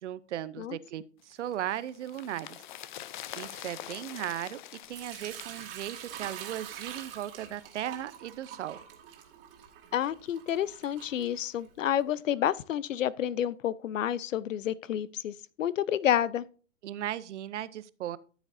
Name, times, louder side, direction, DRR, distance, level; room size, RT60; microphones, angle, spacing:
voice 1, 0.0-2.6 3.4-4.6 4.9-8.8 16.8-18.2, right 12 dB, 70° right, 0.7 m, -37 dB
sound 1, 1.3-6.7 7.0-7.1, left 12 dB, 40° left, 0.5 m, -45 dB
Sink (filling or washing) / Liquid, 4.9-11.9, right 9 dB, 50° right, 2.0 m, -45 dB
voice 2, 9.9-16.5, left 10 dB, 90° left, 0.7 m, -29 dB
13.5 x 7.1 x 2.6 m
hypercardioid pair, 150°, 37 cm